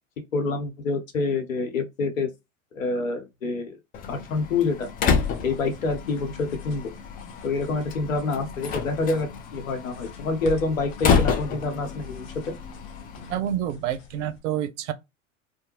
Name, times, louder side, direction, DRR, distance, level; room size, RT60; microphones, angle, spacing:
voice 1, 0.3-2.3 2.7-3.8 4.1-4.9 5.4-6.9 7.4-12.6, left 3 dB, 80° left, 0.9 m, -27 dB
Slam, 3.9-13.4, left 6 dB, 25° left, 0.4 m, -29 dB
sound 1, 4.7-14.4, left 4 dB, 40° left, 0.9 m, -46 dB
voice 2, 13.3-14.9, right 11 dB, 65° right, 0.6 m, -28 dB
2.5 x 2.1 x 2.9 m
hypercardioid pair, 90°, 39 cm